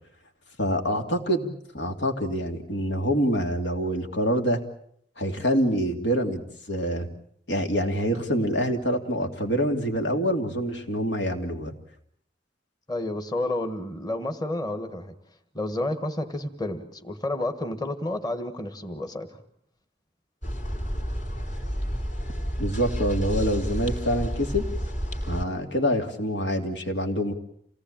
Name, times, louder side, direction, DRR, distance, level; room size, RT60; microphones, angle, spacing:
voice 1, 0.6-1.5 1.7-4.6 5.2-7.1 7.5-11.7 22.6-24.6 25.3-27.3, equal, 90° left, 5 dB, 2.9 m, -26 dB
voice 2, 12.9-15.1 15.5-19.3, left 1 dB, 20° left, 7 dB, 1.6 m, -30 dB
sound 1, 20.4-25.4, equal, 45° left, 3.2 m, -30 dB
27.5 x 18.5 x 8.8 m, 0.68 s
head